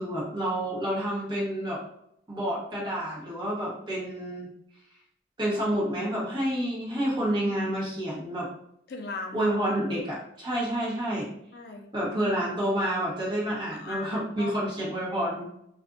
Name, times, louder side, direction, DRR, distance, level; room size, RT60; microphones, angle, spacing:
voice 1, 0.0-1.8 2.3-4.5 5.4-8.5 9.3-11.3 11.9-15.5, right 1 dB, 25° right, -7 dB, 1.1 m, -29 dB
voice 2, 8.9-9.6 11.5-11.9 13.5-14.1 14.4-14.7, left 3 dB, 60° left, 3 dB, 0.4 m, -38 dB
2.5 x 2.4 x 2.4 m, 0.74 s
head